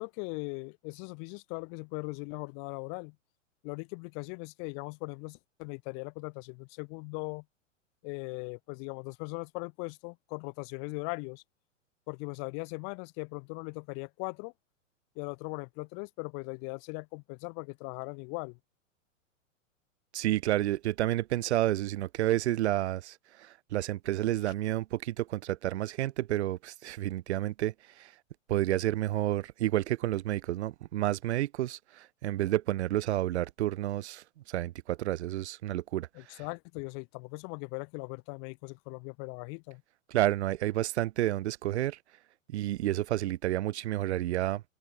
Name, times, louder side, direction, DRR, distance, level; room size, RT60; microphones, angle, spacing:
voice 1, 0.0-3.2 3.6-7.4 8.0-11.4 12.1-14.5 15.1-18.6 24.4-24.5 36.1-39.8, left 40 dB or more, 40° left, 2.8 m, -39 dB
voice 2, 20.1-27.7 28.0-28.1 28.5-36.1 40.1-42.0 42.5-44.6, right 14 dB, 60° right, 0.5 m, -30 dB
figure-of-eight pair, 105°, 39 cm